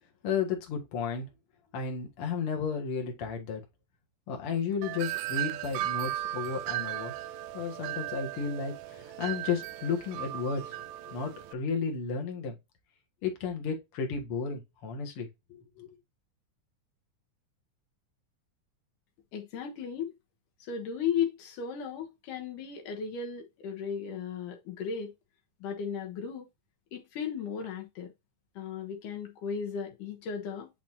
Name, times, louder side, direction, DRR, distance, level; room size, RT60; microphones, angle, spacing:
voice 1, 0.2-1.3 1.7-3.6 4.3-7.1 7.5-10.8 11.1-12.6 13.2-15.3 15.8-15.9, left 6 dB, 50° left, 2.2 m, -33 dB
Wind chime, 4.8-11.5, right 14 dB, 80° right, 1.7 m, -36 dB
voice 2, 19.3-20.1 20.6-25.1 25.6-26.5 26.9-28.1 28.6-30.7, left 7 dB, 80° left, 2.7 m, -35 dB
9.1 x 4.3 x 2.8 m
omnidirectional pair, 3.7 m